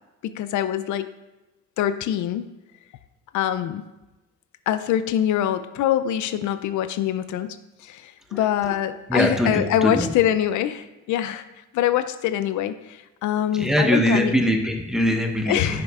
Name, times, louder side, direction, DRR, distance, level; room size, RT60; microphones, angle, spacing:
voice 1, 0.2-1.1 1.8-2.5 3.3-3.8 4.7-14.3 15.5-15.8, left 11 dB, 75° left, 12 dB, 0.4 m, -24 dB
voice 2, 8.3-8.7 9.1-10.1 13.5-15.8, equal, ahead, 2 dB, 1.0 m, -22 dB
11.0 x 6.4 x 2.4 m, 1.1 s
cardioid pair, 90°, 30 cm